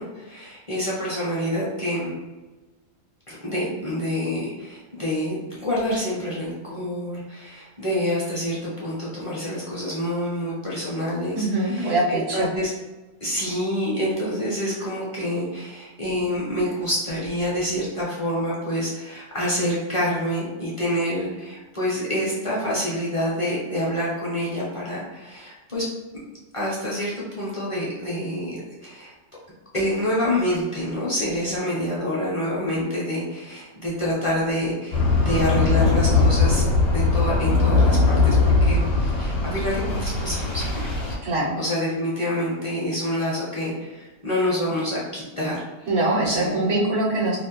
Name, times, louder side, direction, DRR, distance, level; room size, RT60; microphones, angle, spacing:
voice 1, 0.0-2.1 3.3-12.7 13.2-25.8 26.5-29.1 29.7-36.6 36.9-40.9 41.6-45.9 46.2-46.7, equal, 35° left, -7 dB, 0.5 m, -27 dB
voice 2, 11.3-12.5 41.2-41.6 45.9-47.4, right 2 dB, 75° right, -3 dB, 1.0 m, -23 dB
sound 1, 34.9-41.2, left 3 dB, 60° left, 0.9 m, -20 dB
2.5 x 2.1 x 2.8 m, 1.2 s
omnidirectional pair, 1.3 m